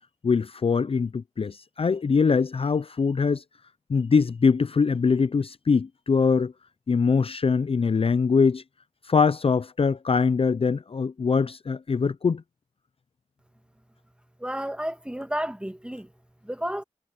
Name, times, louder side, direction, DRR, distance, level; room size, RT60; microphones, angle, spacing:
voice 1, 0.2-3.4 3.9-6.5 6.9-8.6 9.1-12.4, left 5 dB, 50° left, 0.4 m, -23 dB
voice 2, 14.4-16.1 16.4-16.8, equal, 10° right, 1.8 m, -31 dB
wide cardioid pair, 70°, 12 cm